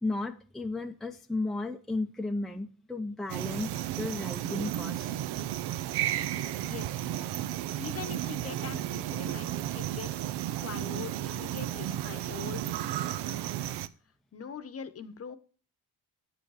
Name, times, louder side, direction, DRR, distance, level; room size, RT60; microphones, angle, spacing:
voice 1, 0.0-5.2 6.5-6.6, left 2 dB, ahead, 5 dB, 0.6 m, -34 dB
sound 1, 3.3-13.9, right 12 dB, 75° right, 0.7 m, -33 dB
voice 2, 6.6-7.1 7.7-13.8 14.3-15.4, left 7 dB, 35° left, 13 dB, 1.0 m, -43 dB
9.5 x 8.1 x 4.8 m, 0.40 s
cardioid pair, 105°, 40 cm